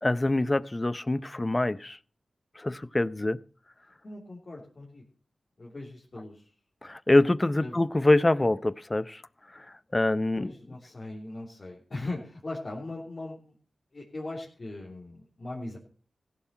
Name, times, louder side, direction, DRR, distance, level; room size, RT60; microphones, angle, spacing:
voice 1, 0.0-2.0 2.6-3.4 6.8-9.2 9.9-10.5, left 2 dB, 30° left, 0.6 m, -25 dB
voice 2, 4.0-5.0 5.6-6.5 7.6-7.7 10.3-13.5 13.9-15.8, left 2 dB, 50° left, 3.3 m, -39 dB
16.0 x 7.3 x 5.8 m
cardioid pair, 50°, 0 cm